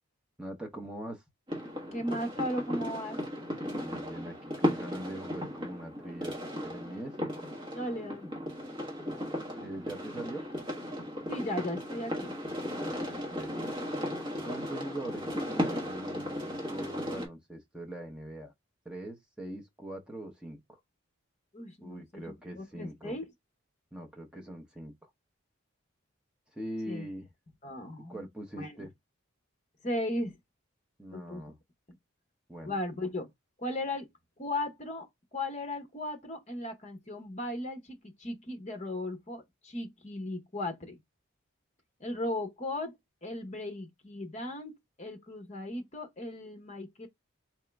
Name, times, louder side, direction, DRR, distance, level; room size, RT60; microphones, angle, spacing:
voice 1, 0.4-1.2 3.8-6.3 6.6-7.2 9.5-10.4 12.7-13.5 14.4-18.5 18.8-20.8 21.8-23.1 23.9-25.1 26.5-27.3 28.1-28.9 31.0-31.6 32.5-32.8, right 1 dB, 5° right, 0.8 m, -42 dB
sound 1, 1.5-17.3, left 1 dB, 25° right, 1.2 m, -36 dB
voice 2, 1.9-3.2 7.7-8.3 11.3-12.3 21.5-22.2 22.5-23.3 26.9-27.1 27.6-28.2 28.6-28.9 29.8-30.4 31.1-31.4 31.9-32.0 32.6-33.3 33.6-34.1 34.4-35.1 35.3-41.0 42.0-47.1, left 1 dB, 35° left, 0.9 m, -36 dB
3.6 x 3.0 x 3.4 m
head